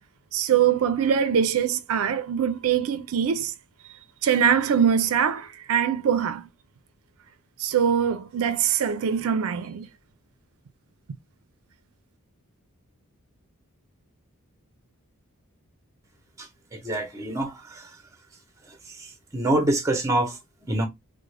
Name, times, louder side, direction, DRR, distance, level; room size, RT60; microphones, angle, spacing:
voice 1, 0.3-3.5 4.2-6.5 7.6-9.9, right 8 dB, 75° right, 0.4 m, -23 dB
voice 2, 16.8-17.5 19.3-20.3 20.7-20.9, right 1 dB, 15° right, 0.7 m, -24 dB
3.6 x 2.0 x 3.2 m
head